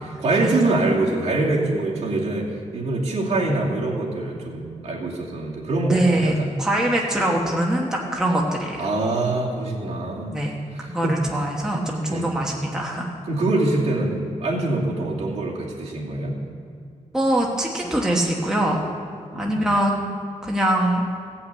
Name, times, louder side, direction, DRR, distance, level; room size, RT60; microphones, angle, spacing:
voice 1, 0.0-6.5 8.8-10.4 10.7-11.2 12.1-12.3 13.2-16.4 19.3-19.7, right 2 dB, 55° right, -4 dB, 2.4 m, -24 dB
voice 2, 5.9-8.9 10.3-10.6 10.9-13.1 17.1-18.8 19.3-20.0 20.4-21.0, right 1 dB, 5° right, -2 dB, 1.2 m, -23 dB
16.5 x 5.8 x 8.4 m, 2.3 s
wide cardioid pair, 145°, 13 cm